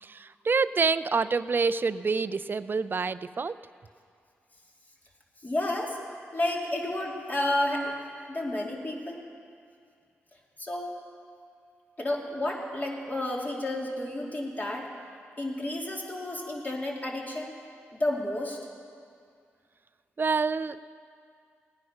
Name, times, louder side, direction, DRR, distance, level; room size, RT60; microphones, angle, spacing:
voice 1, 0.0-3.6 20.2-20.8, right 4 dB, 45° right, 15 dB, 0.5 m, -27 dB
voice 2, 5.4-6.0 6.3-7.9 8.3-9.2 10.6-10.9 12.0-14.9 15.4-17.5 17.9-18.6, left 1 dB, 35° left, -1 dB, 2.8 m, -31 dB
17.5 x 9.8 x 5.8 m, 2.3 s
supercardioid pair, 50°, 5 cm